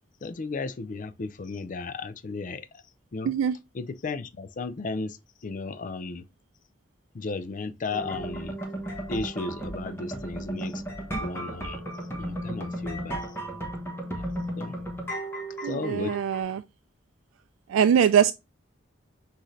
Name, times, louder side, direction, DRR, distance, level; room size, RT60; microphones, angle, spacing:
voice 1, 0.2-2.8 3.1-3.3 3.7-6.2 7.1-8.6 9.1-10.8 11.2-11.8 12.2-13.4 14.2-14.8 15.6-16.2, left 3 dB, 40° left, 0.4 m, -35 dB
sound 1, 7.9-16.4, right 1 dB, 15° left, 1.1 m, -34 dB
voice 2, 15.6-16.6 17.7-18.3, right 8 dB, 85° right, 0.3 m, -22 dB
6.2 x 2.7 x 3.1 m
head